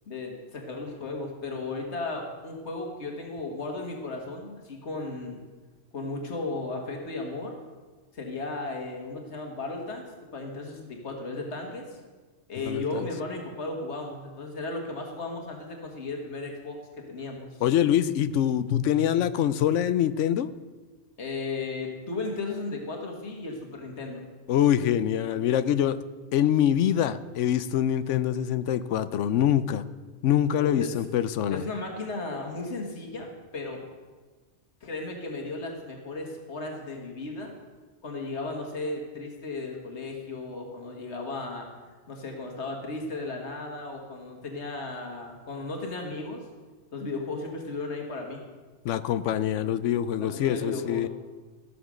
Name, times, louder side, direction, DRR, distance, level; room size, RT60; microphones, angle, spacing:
voice 1, 0.1-5.4 5.9-7.6 8.1-10.0 10.3-12.0 12.5-16.8 17.1-17.6 21.2-24.2 30.5-31.0 31.5-33.9 34.8-37.5 38.0-41.7 42.1-46.4 46.9-48.4 50.2-51.1, left 3 dB, 70° left, 2 dB, 2.0 m, -35 dB
voice 2, 12.7-13.0 17.6-20.5 24.5-26.0 26.3-29.8 30.2-31.6 48.8-51.1, left 10 dB, 85° left, 14 dB, 0.9 m, -24 dB
14.5 x 7.1 x 6.3 m, 1.3 s
omnidirectional pair, 1.2 m